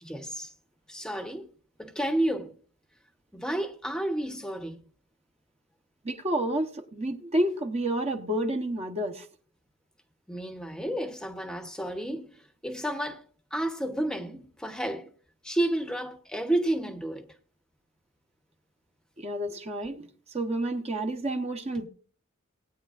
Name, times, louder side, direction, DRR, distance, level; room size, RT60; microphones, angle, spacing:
voice 1, 0.0-0.5 0.9-1.5 1.8-2.5 3.3-4.8 10.3-13.2 13.5-15.1 15.4-17.3, right 1 dB, 5° left, 0.9 m, -31 dB
voice 2, 6.0-9.3 19.2-21.9, right 1 dB, 30° right, 0.9 m, -30 dB
19.0 x 9.1 x 2.4 m
head